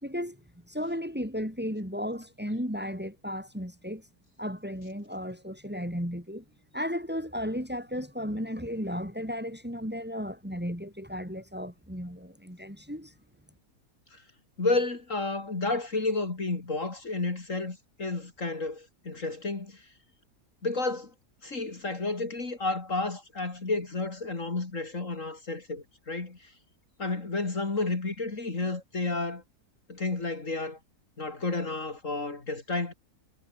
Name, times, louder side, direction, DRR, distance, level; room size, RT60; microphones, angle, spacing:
voice 1, 0.0-4.1 4.4-6.4 6.7-13.1, equal, 5° right, 4.3 m, -34 dB
voice 2, 14.6-19.8 20.6-21.1 21.4-26.5 27.0-29.4 29.9-30.8 31.2-32.9, left 3 dB, 50° left, 3.5 m, -31 dB
omnidirectional pair, 1.7 m